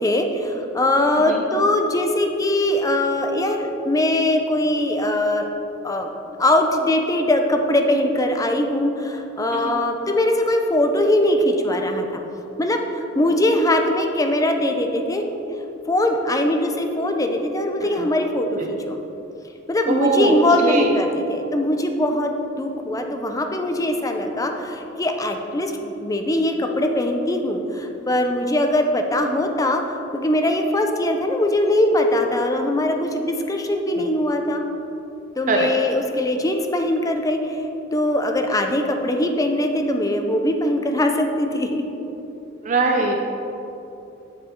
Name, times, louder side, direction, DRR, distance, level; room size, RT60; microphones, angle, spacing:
voice 1, 0.0-5.5 5.8-6.1 6.4-12.2 12.6-15.3 15.9-19.0 19.7-22.3 22.6-29.8 30.1-34.6 35.4-37.6 37.9-41.8, left 1 dB, 20° left, 4 dB, 0.5 m, -21 dB
voice 2, 19.9-20.9 34.0-34.1 35.5-35.7 42.6-43.3, right 3 dB, 40° right, 1 dB, 0.5 m, -21 dB
7.7 x 5.3 x 4.4 m, 2.9 s
head